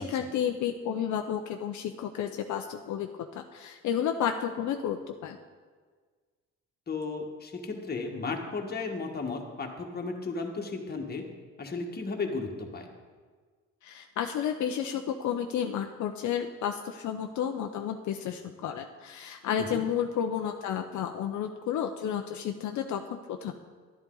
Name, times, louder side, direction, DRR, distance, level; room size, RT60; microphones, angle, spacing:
voice 1, 0.0-5.4 13.8-23.6, left 8 dB, 70° left, 5 dB, 0.7 m, -32 dB
voice 2, 6.9-11.3 11.6-12.9 19.6-19.8, left 4 dB, 30° left, 2 dB, 1.6 m, -34 dB
11.0 x 11.0 x 3.9 m, 1.5 s
cardioid pair, 90°, 30 cm